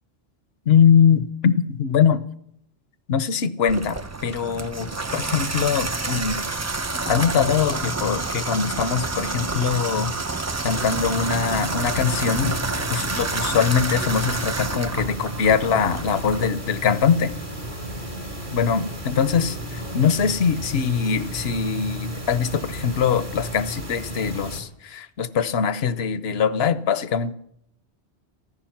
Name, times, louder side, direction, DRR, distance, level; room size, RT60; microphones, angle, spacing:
voice 1, 0.7-2.2 3.1-6.4 7.1-10.1 10.6-12.6 12.9-17.3 18.5-27.3, left 7 dB, 65° left, 14 dB, 1.0 m, -22 dB
Water tap faucet / Bathtub (filling or washing), 3.7-16.5, right 3 dB, 25° right, 0.3 m, -28 dB
sound 1, 10.7-24.6, right 1 dB, 45° right, 3.0 m, -34 dB
15.0 x 14.5 x 5.9 m, 0.74 s
omnidirectional pair, 1.2 m